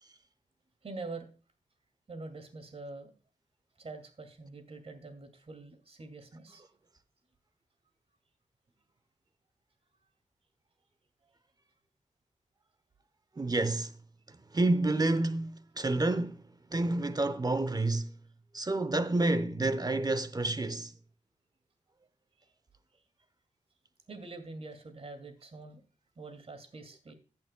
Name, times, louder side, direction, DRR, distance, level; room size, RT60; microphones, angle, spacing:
voice 1, 0.8-1.3 2.1-3.1 3.8-6.6 24.1-25.8 26.2-27.1, right 3 dB, 50° right, 2.3 m, -45 dB
voice 2, 13.4-13.9 14.3-16.4 16.7-18.1 18.5-20.9, right 2 dB, 30° right, 0.8 m, -29 dB
15.0 x 8.6 x 2.2 m
wide cardioid pair, 100°, 13 cm